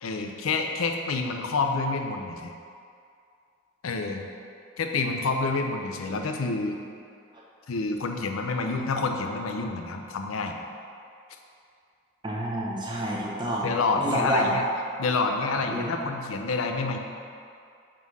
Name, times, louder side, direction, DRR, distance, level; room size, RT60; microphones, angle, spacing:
voice 1, 0.0-2.5 3.8-4.3 4.8-6.8 7.7-10.6 13.6-14.6 15.0-17.0, left 3 dB, 85° left, 4 dB, 0.5 m, -28 dB
voice 2, 12.2-13.7 14.0-14.5 15.7-15.9, right 1 dB, 20° right, -4 dB, 0.8 m, -28 dB
5.5 x 3.8 x 4.7 m, 2.4 s
head